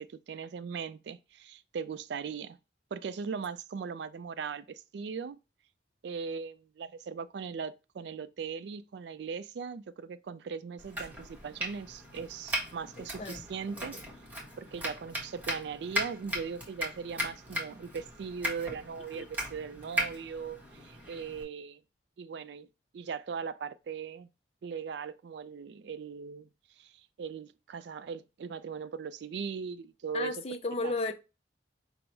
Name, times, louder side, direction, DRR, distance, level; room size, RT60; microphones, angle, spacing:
voice 1, 0.0-2.6 2.9-5.4 6.0-13.9 14.6-21.8 22.2-22.7 22.9-24.3 24.6-26.5 26.8-26.9 27.2-30.4 30.8-30.9, right 6 dB, 70° right, 0.3 m, -39 dB
Domestic sounds home sounds, 10.8-21.4, equal, 10° right, 0.9 m, -38 dB
voice 2, 13.0-13.4 13.8-13.9 19.2-19.3 30.1-31.1, left 2 dB, 35° left, 0.4 m, -34 dB
5.3 x 2.0 x 4.4 m
head